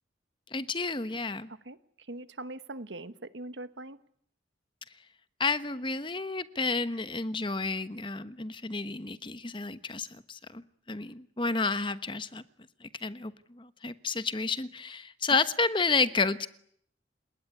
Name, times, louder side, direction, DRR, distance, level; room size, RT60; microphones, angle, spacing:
voice 1, 0.5-1.5 5.4-10.6 10.9-12.4 12.8-16.5, left 4 dB, 25° left, 13 dB, 1.1 m, -31 dB
voice 2, 2.1-4.0, right 2 dB, 75° right, 13 dB, 1.4 m, -41 dB
30.0 x 19.0 x 9.8 m, 0.67 s
head